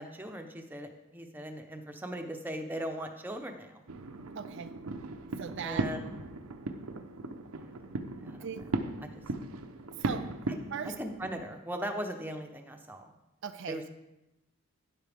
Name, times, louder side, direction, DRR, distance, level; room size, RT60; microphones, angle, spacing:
voice 1, 0.0-3.8 5.6-6.1 8.2-8.6 9.0-9.2 11.0-13.1 13.7-13.9, equal, 10° right, 4 dB, 0.8 m, -39 dB
sound 1, 3.9-11.4, right 2 dB, 85° right, 0.8 m, -37 dB
voice 2, 4.3-4.8 5.4-5.9 8.3-8.7 9.9-10.3 10.7-11.0 13.4-13.9, right 7 dB, 55° right, 9 dB, 0.4 m, -39 dB
12.0 x 10.0 x 3.5 m, 0.97 s
head